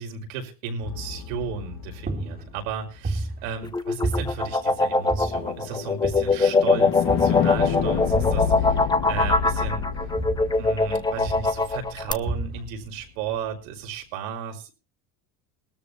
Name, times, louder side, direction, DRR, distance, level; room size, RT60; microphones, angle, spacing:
voice 1, 0.0-9.9 10.6-14.7, right 6 dB, 90° right, 3 dB, 5.4 m, -34 dB
sound 1, 0.8-3.0 4.8-12.9, left 8 dB, 60° left, 2.3 m, -30 dB
sound 2, 1.3-1.7 2.1-3.7 4.0-5.6 6.0-6.6 7.1-8.6 9.1-10.9 11.3-11.7 12.2-12.9, right 2 dB, 25° right, 2.4 m, -33 dB
sound 3, 3.6-12.1, left 3 dB, 10° left, 0.9 m, -22 dB
21.0 x 13.5 x 3.0 m, 0.33 s
cardioid pair, 120°, 38 cm